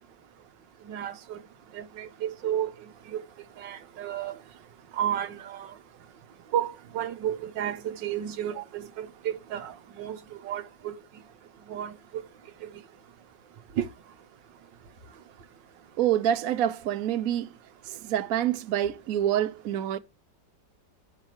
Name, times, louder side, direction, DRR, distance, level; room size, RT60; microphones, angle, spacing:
voice 1, 0.8-1.4 1.7-2.7 3.1-3.2 3.6-4.4 5.0-5.7 6.5-10.2 10.4-10.9 11.7-12.2 12.6-12.7 13.8-13.9, right 10 dB, 90° right, 1.6 m, -32 dB
voice 2, 16.0-17.5 17.8-20.0, right 11 dB, 60° right, 1.1 m, -27 dB
14.5 x 5.5 x 3.1 m
omnidirectional pair, 1.9 m